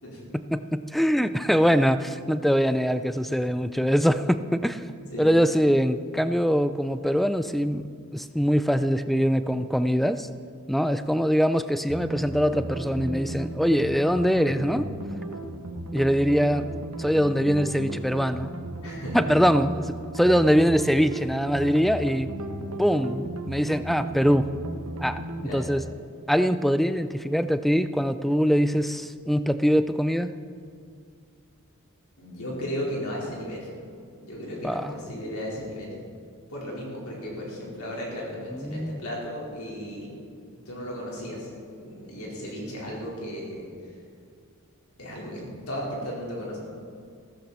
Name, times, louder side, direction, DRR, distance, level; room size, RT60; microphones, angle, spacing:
voice 1, 0.3-4.8 5.2-10.3 10.7-14.9 15.9-16.7 17.0-18.5 19.1-22.3 22.8-24.5 25.0-25.2 25.5-25.8 26.3-30.3 34.6-34.9 38.5-39.0, equal, ahead, 12 dB, 0.4 m, -23 dB
sound 1, 11.9-25.6, right 2 dB, 80° right, 1.3 m, -36 dB
voice 2, 18.8-19.2 25.4-25.7 32.2-33.7 34.2-35.9 36.5-40.2 40.7-41.5 41.8-43.7 45.0-46.6, equal, 80° left, -4 dB, 4.3 m, -35 dB
15.5 x 14.0 x 4.3 m, 2.2 s
head